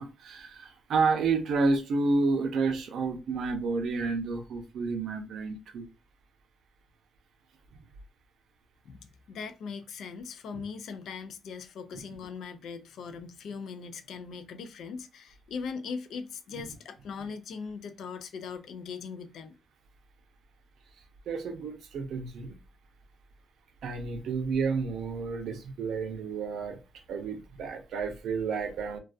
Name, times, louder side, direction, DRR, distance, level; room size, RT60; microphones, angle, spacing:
voice 1, 0.0-5.9 10.5-10.6 21.3-22.6 23.8-26.8 27.1-29.0, right 4 dB, 85° right, 0.5 m, -30 dB
voice 2, 8.8-19.6, left 5 dB, 80° left, 0.3 m, -40 dB
2.3 x 2.3 x 2.4 m
wide cardioid pair, 150°, 0 cm